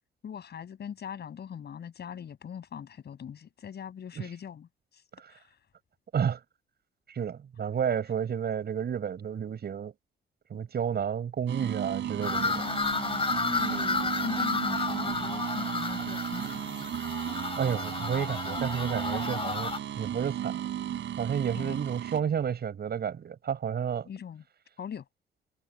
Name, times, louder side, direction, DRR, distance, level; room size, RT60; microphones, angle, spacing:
voice 1, 0.2-5.0 5.3-5.6 12.5-17.0 21.5-21.8 24.0-24.4 24.8-25.1, left 8 dB, 55° left, 6.9 m, -41 dB
voice 2, 7.1-9.9 10.5-12.6 17.6-20.6 21.2-24.1, right 8 dB, 55° right, 7.3 m, -31 dB
sound 1, 11.5-22.2, right 10 dB, 70° right, 8.0 m, -35 dB
sound 2, 12.2-19.8, left 4 dB, 30° left, 3.6 m, -32 dB
cardioid pair, 90°, 20 cm